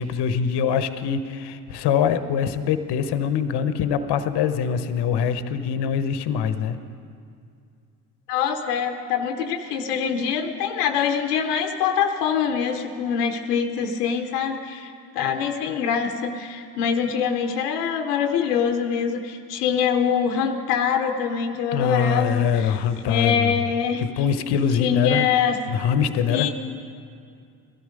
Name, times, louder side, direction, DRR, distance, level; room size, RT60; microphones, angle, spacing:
voice 1, 0.0-6.8 21.7-23.6 24.0-25.3 25.7-26.5, left 7 dB, 60° left, 11 dB, 0.9 m, -23 dB
voice 2, 8.3-22.8 23.1-24.0 24.8-25.6 26.3-26.5, left 7 dB, 85° left, 6 dB, 0.8 m, -24 dB
15.0 x 12.5 x 5.2 m, 2.4 s
hypercardioid pair, 55°, 46 cm